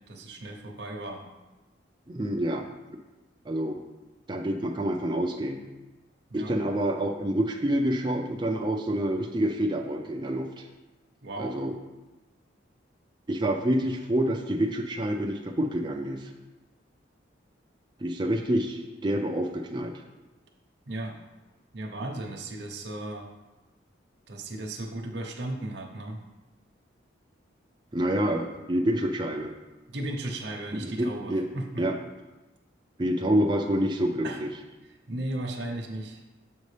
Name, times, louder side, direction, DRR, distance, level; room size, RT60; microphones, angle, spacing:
voice 1, 0.1-1.2 6.3-6.5 11.2-11.6 20.9-21.2 21.7-23.3 24.3-26.2 29.9-31.8 34.2-34.4 35.1-36.2, right 1 dB, 60° right, 1 dB, 0.8 m, -35 dB
voice 2, 2.1-2.6 3.5-3.8 4.3-5.6 6.3-10.7 11.4-11.7 13.3-16.3 18.0-19.9 27.9-29.5 30.8-31.5 31.8-32.0 33.0-34.5, right 1 dB, 25° right, 2 dB, 0.4 m, -27 dB
7.5 x 5.3 x 3.3 m, 1.1 s
head